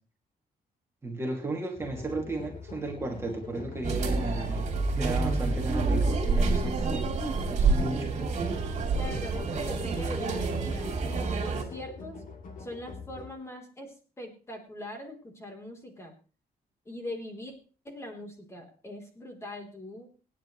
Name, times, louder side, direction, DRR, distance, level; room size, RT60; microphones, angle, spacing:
voice 1, 1.0-7.1 7.5-8.1, right 2 dB, 15° right, 0 dB, 2.5 m, -34 dB
sound 1, 1.7-13.3, left 4 dB, 60° left, 3.0 m, -43 dB
sound 2, 3.8-11.6, right 3 dB, 45° right, 3.4 m, -28 dB
voice 2, 8.9-12.2 12.6-16.1 16.9-17.5 17.8-20.1, left 1 dB, 15° left, 3 dB, 3.6 m, -41 dB
26.5 x 9.9 x 3.2 m, 0.38 s
cardioid pair, 165°, 16 cm